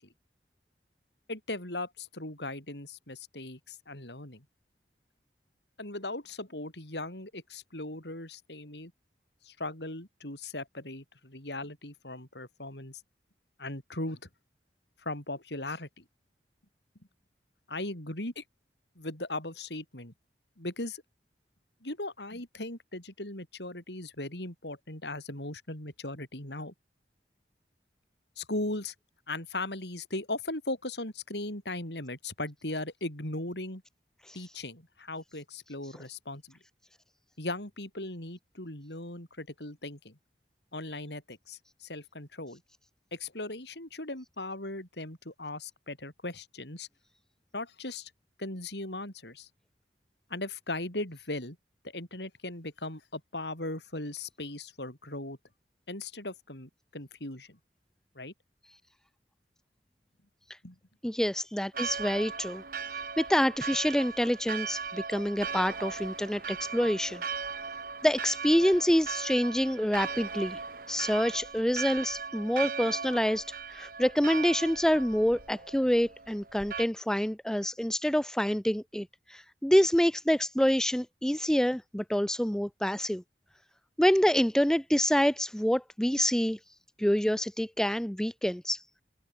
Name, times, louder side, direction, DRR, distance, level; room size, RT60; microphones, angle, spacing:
voice 1, 1.3-4.4 5.8-8.9 9.4-13.0 13.6-14.3 15.0-16.0 17.7-18.4 19.0-20.1 20.6-21.0 21.8-26.7 28.4-28.9 29.3-33.8 34.3-36.6 37.4-40.2 40.7-42.6 43.1-46.9 47.5-48.1 48.4-49.5 50.3-51.6 51.8-55.4 55.9-57.6 58.1-58.3 60.6-60.8, left 2 dB, 75° left, 7.7 m, -38 dB
voice 2, 61.0-62.6 63.2-67.2 68.0-70.6 70.9-73.4 73.7-83.2 84.0-86.6 87.0-88.8, equal, 5° left, 0.5 m, -27 dB
Church bell, 61.7-76.9, right 5 dB, 55° right, 2.6 m, -38 dB
head